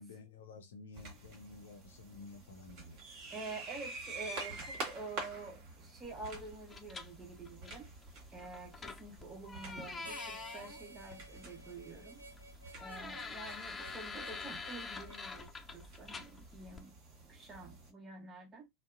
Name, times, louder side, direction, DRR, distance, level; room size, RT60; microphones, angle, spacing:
voice 1, 0.0-3.0, left 3 dB, 60° left, 0.7 m, -52 dB
sound 1, 0.9-17.9, right 3 dB, 40° right, 1.2 m, -49 dB
voice 2, 3.3-7.9 8.3-12.2 12.8-16.9 17.3-18.7, right 3 dB, 20° right, 1.1 m, -48 dB
sound 2, 6.0-16.8, left 4 dB, 15° left, 0.4 m, -47 dB
Harmonica, 10.0-15.3, right 2 dB, 80° right, 0.5 m, -53 dB
2.7 x 2.2 x 2.5 m
figure-of-eight pair, 90°, 0 cm